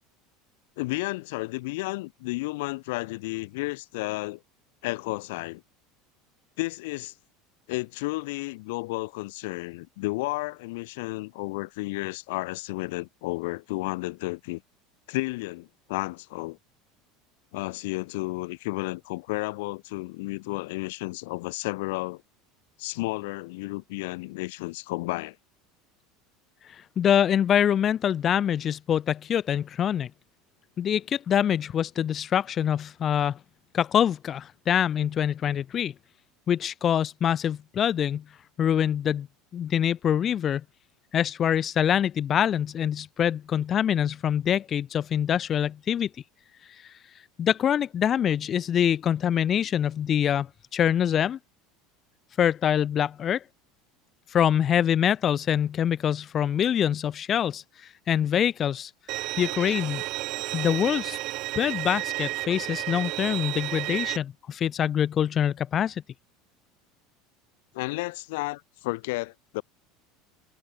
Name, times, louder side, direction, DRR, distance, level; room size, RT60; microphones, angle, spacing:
voice 1, 0.8-4.4 4.8-5.6 6.6-7.1 7.7-14.6 15.1-16.6 17.5-22.2 22.8-25.4 67.7-69.6, left 23 dB, 80° left, 5.4 m, -32 dB
voice 2, 26.6-30.1 30.8-33.4 33.7-35.9 36.5-38.2 38.6-39.3 39.5-40.6 41.1-46.1 46.6-47.0 47.4-51.4 52.4-53.4 54.3-58.9 59.4-60.0 60.5-61.2 61.5-66.0, left 9 dB, 35° left, 1.9 m, -25 dB
Bowed string instrument, 59.1-64.2, right 20 dB, 60° right, 3.0 m, -32 dB
supercardioid pair, 120°, 0 cm